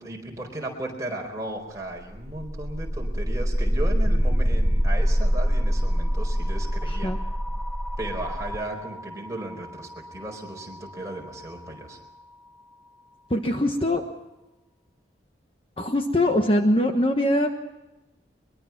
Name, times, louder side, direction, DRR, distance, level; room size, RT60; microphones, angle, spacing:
voice 1, 0.0-7.1 8.0-12.0, right 1 dB, 20° right, 0 dB, 4.6 m, -35 dB
sound 1, 2.0-11.9, equal, ahead, 0.8 m, -26 dB
voice 2, 6.8-7.2 13.3-14.0 15.8-17.6, left 1 dB, 30° left, 5 dB, 1.3 m, -22 dB
22.5 x 22.5 x 6.0 m, 1.0 s
head